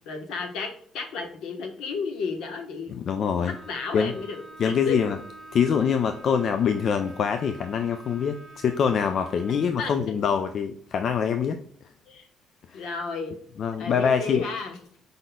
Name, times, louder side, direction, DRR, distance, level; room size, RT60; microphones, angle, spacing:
voice 1, 0.0-2.9 3.4-5.0 9.8-10.1 12.1-12.3 12.7-13.3 13.8-14.8, left 4 dB, 75° left, 4 dB, 1.1 m, -33 dB
voice 2, 2.9-3.6 3.9-4.1 4.6-5.2 5.5-11.6 12.7-12.8 13.6-14.4, left 7 dB, 55° left, 8 dB, 0.4 m, -24 dB
Bowed string instrument, 3.3-9.9, right 2 dB, 40° right, 0.8 m, -47 dB
5.1 x 4.0 x 2.2 m, 0.63 s
cardioid pair, 105°, 0 cm